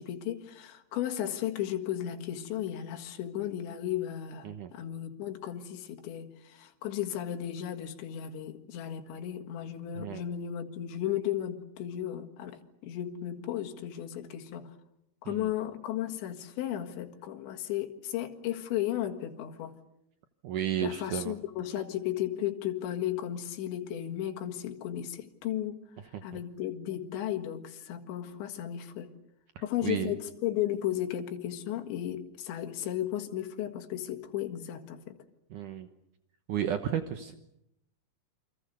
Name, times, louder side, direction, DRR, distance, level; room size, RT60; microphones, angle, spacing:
voice 1, 0.0-14.8 15.2-19.7 20.8-25.8 26.2-29.1 29.6-35.2, left 11 dB, 75° left, 4.1 m, -35 dB
voice 2, 20.4-21.4 26.1-26.2 29.6-30.1 35.5-35.9 36.5-37.3, right 9 dB, 75° right, 1.9 m, -33 dB
28.5 x 26.5 x 6.8 m
omnidirectional pair, 5.2 m